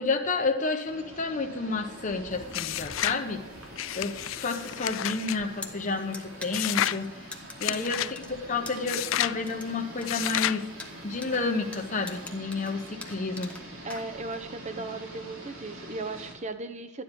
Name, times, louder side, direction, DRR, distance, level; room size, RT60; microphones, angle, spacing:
voice 1, 0.0-3.4 3.9-7.1 7.6-10.7 11.0-13.5, left 3 dB, 40° left, 3 dB, 0.9 m, -30 dB
sound 1, 0.9-16.3, right 1 dB, 85° right, 3.1 m, -45 dB
sound 2, 2.5-3.2 3.8-5.4 6.5-7.0 7.6-8.1 8.9-9.4 10.1-10.6, left 13 dB, 70° left, 0.3 m, -30 dB
sound 3, 5.3-14.5, left 2 dB, 5° left, 1.1 m, -44 dB
voice 2, 7.7-8.1 13.8-17.0, right 3 dB, 35° right, 8 dB, 1.0 m, -37 dB
13.0 x 9.9 x 5.3 m, 1.1 s
head